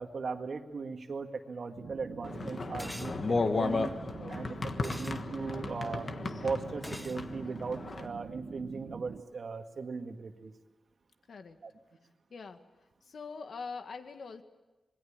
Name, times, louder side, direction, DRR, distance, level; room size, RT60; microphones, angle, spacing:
voice 1, 0.0-3.9 4.3-6.1 6.4-10.5 11.6-11.7, right 4 dB, 55° right, 6 dB, 1.8 m, -38 dB
sound 1, 1.8-9.2, right 6 dB, 85° right, 0.9 m, -45 dB
sound 2, 2.2-8.1, left 3 dB, 45° left, 1.4 m, -34 dB
sound 3, 2.8-3.2 4.8-5.2 6.8-7.2, left 1 dB, 10° left, 0.9 m, -43 dB
voice 2, 11.3-11.6 12.3-12.6 13.0-14.4, left 4 dB, 70° left, 7 dB, 1.8 m, -43 dB
26.5 x 21.5 x 8.8 m, 1.1 s
wide cardioid pair, 165°, 0 cm